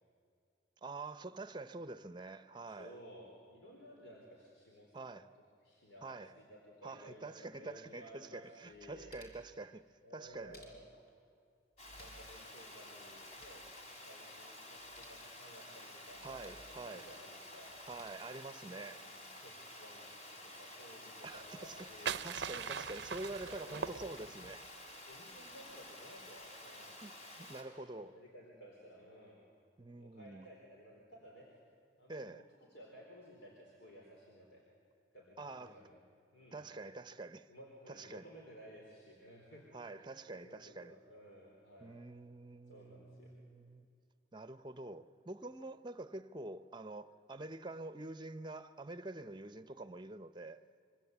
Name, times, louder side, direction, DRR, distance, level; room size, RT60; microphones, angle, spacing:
voice 1, 0.8-2.9 4.9-5.2 6.0-6.3 6.8-9.9 10.1-10.6 16.2-17.1 17.9-19.1 21.2-24.7 27.0-28.2 29.8-30.5 32.1-32.4 35.4-35.8 36.5-37.5 37.9-38.2 39.7-40.9 41.8-43.9 44.3-50.6, right 2 dB, 25° right, 0.7 m, -47 dB
voice 2, 2.7-5.2 5.6-9.1 10.0-10.9 11.9-13.7 14.0-17.8 18.8-22.2 23.4-24.0 25.1-26.9 28.1-29.4 30.0-31.5 32.0-32.1 32.7-34.6 35.1-36.0 36.3-36.6 37.5-39.7 40.0-42.0 42.7-43.3, equal, 80° left, 4.2 m, -56 dB
sound 1, 8.6-9.5 10.2-11.1 11.7-12.4 12.7-12.8 13.1-13.7 14.7-15.2 16.1-16.7 17.7-18.1, equal, 55° left, 4.8 m, -60 dB
Water, 11.8-27.6, left 1 dB, 40° left, 3.7 m, -52 dB
sound 2, 21.5-24.6, right 7 dB, 60° right, 0.5 m, -41 dB
26.5 x 24.5 x 8.2 m
head